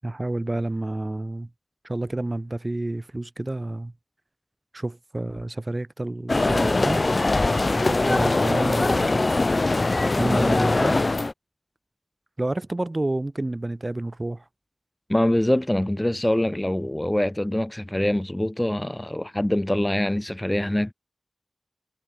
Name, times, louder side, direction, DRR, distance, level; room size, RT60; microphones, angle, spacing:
voice 1, 0.0-1.5 1.8-3.9 4.7-7.0 7.8-9.2 10.2-11.0 12.4-14.4, right 2 dB, 35° right, 7.5 m, -29 dB
sound 1, 6.3-11.3, left 2 dB, 50° left, 1.0 m, -21 dB
voice 2, 15.1-20.9, left 1 dB, 15° left, 5.2 m, -24 dB
wide cardioid pair, 60°, 0 cm